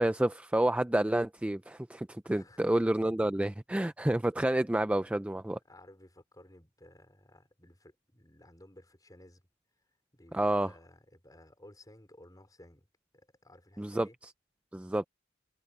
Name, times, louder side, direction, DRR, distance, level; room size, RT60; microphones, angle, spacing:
voice 1, 0.0-5.6 10.3-10.7 13.8-14.1 14.7-15.1, right 1 dB, 5° right, 0.3 m, -29 dB
voice 2, 2.2-2.6 4.5-4.7 5.6-9.5 10.1-12.9 13.1-14.2, left 1 dB, 20° left, 4.8 m, -56 dB
head